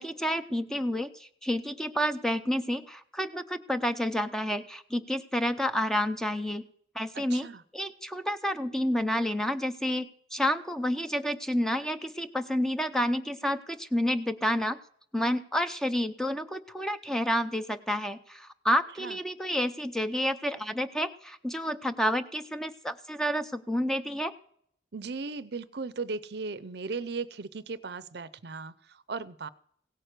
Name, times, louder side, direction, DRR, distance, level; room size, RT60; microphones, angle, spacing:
voice 1, 0.0-6.6 6.9-7.5 7.7-14.8 15.1-24.3, equal, 5° left, 10 dB, 0.6 m, -29 dB
voice 2, 7.1-7.6 19.0-19.2 24.9-29.5, right 4 dB, 60° right, 17 dB, 0.6 m, -37 dB
17.0 x 9.0 x 6.6 m, 0.66 s
head